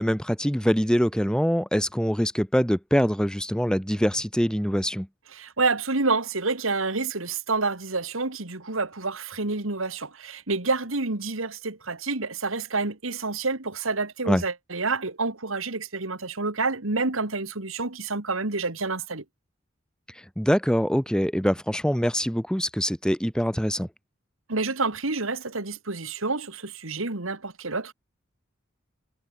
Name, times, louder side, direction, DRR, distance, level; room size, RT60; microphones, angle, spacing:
voice 1, 0.0-5.1 14.3-14.4 20.4-23.9, equal, 5° left, 3.0 m, -24 dB
voice 2, 5.3-19.2 24.5-27.9, right 3 dB, 80° right, 2.4 m, -28 dB
head